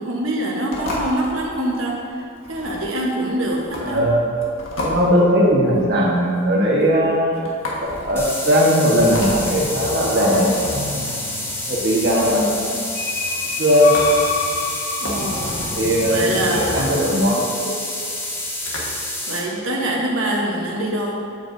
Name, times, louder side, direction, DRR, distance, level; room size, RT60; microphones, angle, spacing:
voice 1, 0.0-4.0 12.2-12.9 15.0-15.6 16.1-17.0 19.3-21.2, right 1 dB, 75° right, -2 dB, 1.0 m, -25 dB
sound 1, 0.7-19.1, left 1 dB, 75° left, 1.5 m, -34 dB
voice 2, 3.8-4.3 4.8-7.4 7.8-11.0 11.7-12.4 13.6-13.9 15.8-17.7, equal, 50° right, -4 dB, 1.2 m, -18 dB
sound 2, 8.2-19.4, left 1 dB, 10° left, 0.7 m, -28 dB
sound 3, 9.5-17.4, left 4 dB, 45° left, 0.5 m, -30 dB
8.9 x 7.9 x 2.6 m, 2.5 s
head